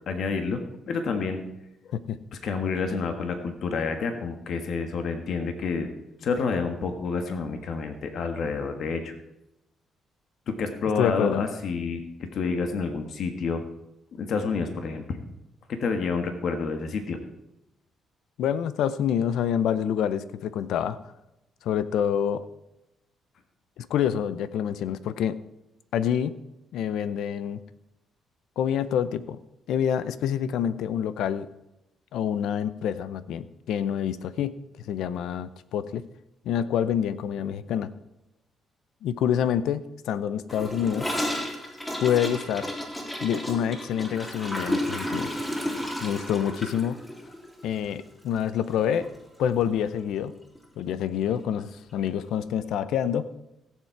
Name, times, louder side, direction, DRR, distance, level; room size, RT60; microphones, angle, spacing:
voice 1, 0.1-1.4 2.4-5.9 6.2-9.1 10.5-13.6 14.2-15.2 15.7-17.2, left 4 dB, 65° left, 6 dB, 1.5 m, -29 dB
voice 2, 11.0-11.4 18.4-21.0 21.6-22.4 23.8-25.4 25.9-26.3 26.7-27.6 28.6-29.4 29.7-31.5 32.1-34.5 34.9-36.0 36.4-37.9 39.0-41.1 42.0-42.7 43.2-45.3 46.0-47.0 47.6-49.1 49.4-50.3 50.8-53.3, left 9 dB, 80° left, 15 dB, 0.6 m, -27 dB
Gurgling / Toilet flush, 40.5-48.8 49.0-49.2 49.4-49.9 50.2-50.3 50.5-50.6 51.6-51.7, equal, 15° left, 3.3 m, -32 dB
16.0 x 7.5 x 4.6 m, 0.91 s
cardioid pair, 90°, 0 cm